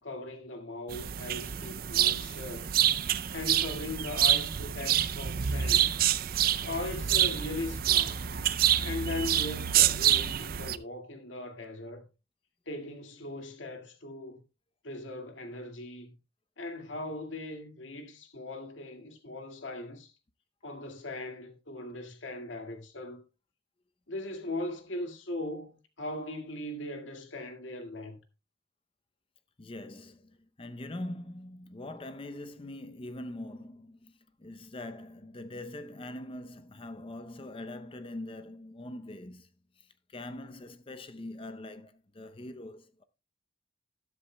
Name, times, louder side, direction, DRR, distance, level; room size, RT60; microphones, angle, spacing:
voice 1, 0.0-2.7 3.3-6.0 6.6-8.3 8.8-12.0 12.7-14.4 14.8-16.1 16.6-20.1 20.6-23.2 24.1-28.2, left 2 dB, 75° left, 2.0 m, -39 dB
sound 1, 0.9-10.8, right 10 dB, 50° right, 0.5 m, -27 dB
voice 2, 29.6-39.5 39.8-43.0, left 1 dB, 30° left, 0.6 m, -43 dB
12.5 x 11.5 x 2.2 m
head